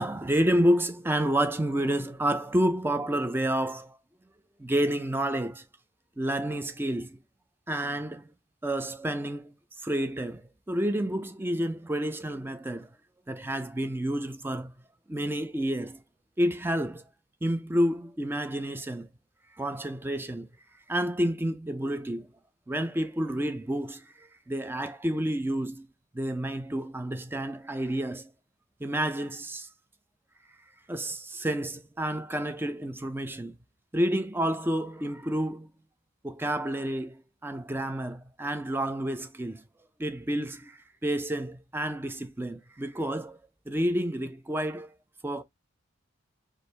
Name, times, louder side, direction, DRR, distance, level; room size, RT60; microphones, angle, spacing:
voice 1, 0.0-4.0 4.6-5.6 6.2-7.2 7.7-8.3 8.6-12.9 13.3-14.7 15.1-16.0 16.4-17.0 17.4-19.1 19.6-20.5 20.9-22.3 22.7-25.9 26.1-28.3 28.8-29.7 30.9-33.6 33.9-35.7 36.2-39.6 40.0-43.4 43.7-44.9 45.2-45.4, right 1 dB, 10° right, 0.4 m, -29 dB
4.5 x 2.5 x 3.2 m
head